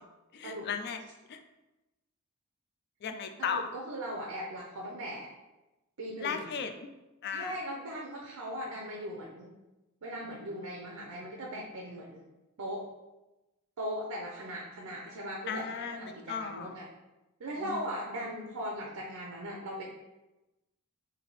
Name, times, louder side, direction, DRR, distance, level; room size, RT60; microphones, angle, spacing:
voice 1, 0.3-1.0 1.3-1.4 3.0-3.7 6.2-6.9 7.2-7.6 15.5-16.7 17.6-17.8, left 6 dB, 50° left, 7 dB, 0.4 m, -36 dB
voice 2, 3.4-5.3 6.0-6.5 7.3-9.5 10.0-12.2 12.6-12.8 13.8-16.9 17.4-19.8, equal, 85° right, -1 dB, 0.6 m, -39 dB
3.4 x 2.7 x 3.9 m, 1.0 s
head